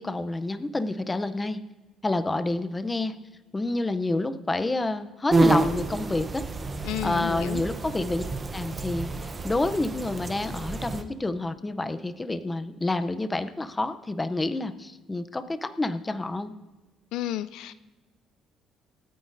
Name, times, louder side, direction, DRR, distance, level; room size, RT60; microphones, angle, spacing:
voice 1, 0.0-1.6 2.0-3.1 3.5-6.4 7.0-8.2 8.5-16.5, left 2 dB, 15° left, 0.5 m, -28 dB
sound 1, 5.3-11.0, right 3 dB, 25° right, 0.7 m, -28 dB
voice 2, 6.8-7.6 17.1-17.7, left 12 dB, 80° left, 0.3 m, -31 dB
25.5 x 9.3 x 2.6 m
cardioid pair, 145°, 0 cm